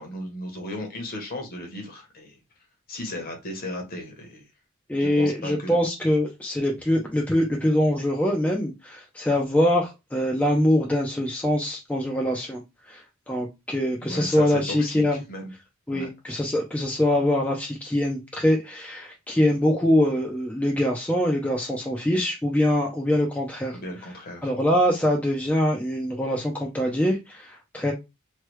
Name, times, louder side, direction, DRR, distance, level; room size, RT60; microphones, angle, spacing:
voice 1, 0.0-2.4 2.9-4.4 5.0-5.8 14.0-15.5 15.9-16.1 23.8-24.5, left 1 dB, 45° left, 2 dB, 1.0 m, -35 dB
voice 2, 4.9-12.6 12.9-15.2 15.9-23.8 24.4-27.9, left 1 dB, 5° left, 0 dB, 0.4 m, -24 dB
3.2 x 2.2 x 3.0 m, 0.23 s
head